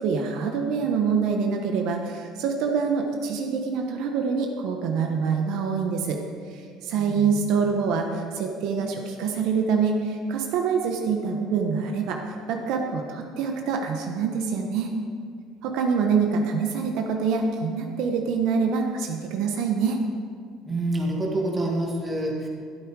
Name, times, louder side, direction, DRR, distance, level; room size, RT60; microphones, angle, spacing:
voice 1, 0.0-6.2 6.8-12.2 12.5-14.9 15.6-20.0, right 5 dB, 60° right, 2 dB, 1.2 m, -25 dB
voice 2, 6.9-7.4 20.7-22.5, right 1 dB, 10° right, -1 dB, 1.8 m, -27 dB
12.5 x 12.0 x 4.9 m, 2.2 s
cardioid pair, 175°, 0 cm